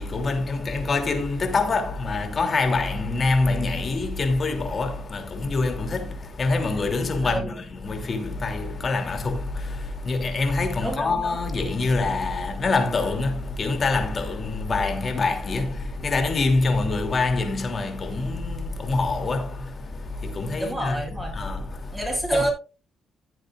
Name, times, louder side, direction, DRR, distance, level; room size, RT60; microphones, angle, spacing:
voice 1, 0.0-21.0 21.3-22.0 22.3-22.5, left 3 dB, 40° left, 2.9 m, -25 dB
voice 2, 7.2-7.5 10.8-11.4 20.6-21.4 21.9-22.5, right 1 dB, 10° right, 5.7 m, -28 dB
16.0 x 7.9 x 2.5 m
cardioid pair, 90°, 0 cm